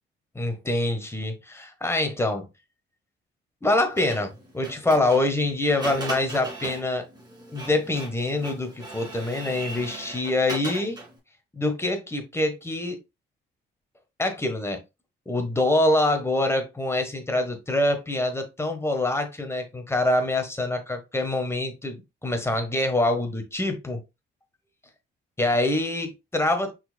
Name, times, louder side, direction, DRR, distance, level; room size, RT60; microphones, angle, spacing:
voice 1, 0.3-2.5 3.6-7.1 7.5-11.0 11.5-13.0 14.2-14.8 15.3-24.0 25.4-26.7, left 2 dB, 15° left, 1.3 m, -25 dB
Printer, 4.0-11.2, right 2 dB, 20° right, 2.2 m, -38 dB
5.5 x 4.3 x 2.3 m
cardioid pair, 90°, 20 cm